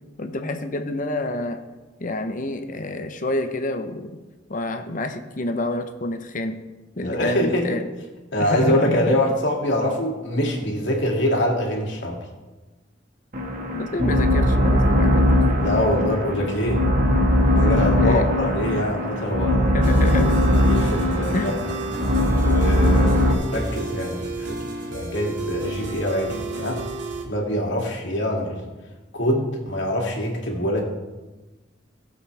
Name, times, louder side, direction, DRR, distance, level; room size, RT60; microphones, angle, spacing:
voice 1, 0.2-1.6 2.0-4.2 4.5-6.6 7.0-7.9 8.4-9.2 13.7-15.3 18.0-18.3 19.7-20.4 21.3-21.5, left 2 dB, 45° left, 7 dB, 0.9 m, -28 dB
voice 2, 7.0-7.8 8.3-12.2 15.6-16.8 17.5-19.8 20.6-21.5 22.4-26.8 27.2-28.6 29.1-30.8, left 1 dB, 75° left, -1 dB, 2.5 m, -24 dB
sound 1, 13.3-23.3, left 1 dB, 50° right, 1.5 m, -20 dB
sound 2, 19.8-27.2, right 2 dB, 70° right, 2.3 m, -32 dB
19.0 x 7.4 x 3.4 m, 1.2 s
head